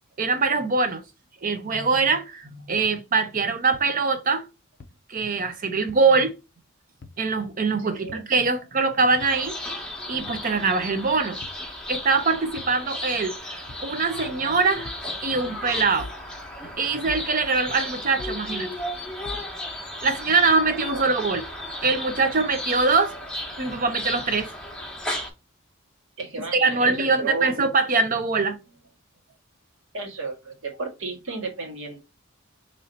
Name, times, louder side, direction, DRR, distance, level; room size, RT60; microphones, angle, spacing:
voice 1, 0.2-1.0 1.4-4.5 5.1-6.4 7.2-9.6 10.1-11.4 11.9-14.9 15.2-16.1 16.8-18.7 20.0-21.4 21.8-23.1 23.6-24.5 26.5-28.6, right 4 dB, 40° right, 0.6 m, -23 dB
sound 1, 3.7-3.8 4.8-4.9 5.9-6.0 7.0-7.2 8.1-8.3 9.2-9.4 10.3-10.5 11.4-11.6 12.6-12.8 13.7-13.9 14.9-15.1 16.0-16.2 17.1-17.3 18.2-18.4 19.3-19.5, left 3 dB, 50° left, 0.5 m, -41 dB
voice 2, 7.8-8.2 26.2-27.5 29.9-32.0, right 3 dB, 70° right, 1.7 m, -32 dB
sound 2, 9.2-25.3, left 1 dB, 5° left, 0.9 m, -34 dB
3.1 x 2.7 x 4.0 m
head